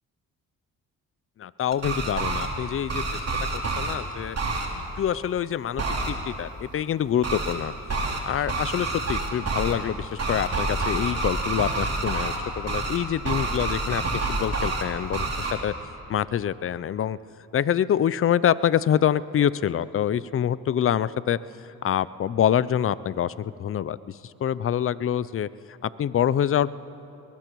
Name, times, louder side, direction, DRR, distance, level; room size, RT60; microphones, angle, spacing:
voice 1, 1.4-3.2 3.5-4.4 5.0-7.7 8.3-15.7 16.1-17.2 17.5-21.4 21.8-25.5 25.8-26.7, left 9 dB, 35° left, 18 dB, 0.4 m, -26 dB
sound 1, 1.7-2.5 2.9-3.9 4.3-4.7 5.8-6.1 7.2-7.5 7.9-8.2 8.5-9.7 10.2-12.4 12.7-13.0 13.2-14.8 15.1-15.5, right 3 dB, 40° right, 2.9 m, -27 dB
21.5 x 20.0 x 3.1 m, 2.8 s
supercardioid pair, 55°, 38 cm